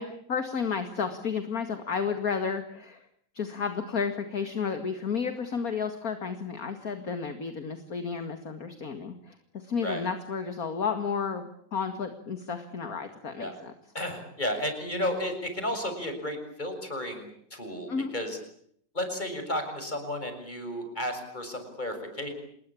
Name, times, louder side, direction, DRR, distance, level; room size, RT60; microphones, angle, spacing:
voice 1, 0.0-3.1 3.3-13.7 17.9-18.1, left 6 dB, 50° left, 8 dB, 2.5 m, -32 dB
voice 2, 14.0-18.4 18.9-22.3, left 1 dB, 25° left, 7 dB, 6.8 m, -33 dB
29.0 x 21.0 x 8.6 m, 0.67 s
omnidirectional pair, 2.0 m